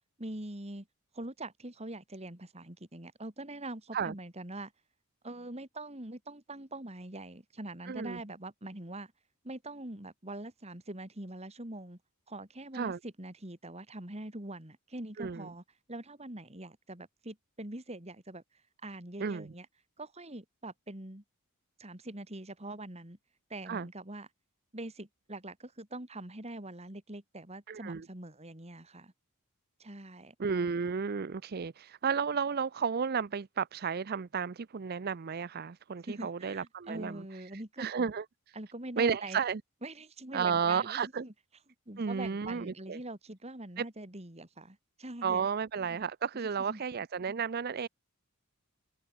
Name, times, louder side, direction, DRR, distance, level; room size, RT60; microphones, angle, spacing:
voice 1, 0.2-0.9 1.1-4.7 5.2-9.1 9.4-12.0 12.3-15.6 15.9-18.4 18.8-19.7 20.0-21.2 21.8-23.2 23.5-24.3 24.7-29.1 29.8-30.3 36.0-37.9 38.5-39.4 39.8-41.3 41.9-45.5 46.3-46.8, right 1 dB, 30° right, 2.7 m, -43 dB
voice 2, 7.9-8.2 12.7-13.0 15.2-15.5 19.2-19.5 23.7-23.9 27.7-28.0 30.4-37.4 37.8-38.6 39.0-39.6 40.3-41.3 42.0-43.0 43.8-43.9 45.2-47.9, right 6 dB, 45° right, 0.5 m, -33 dB
head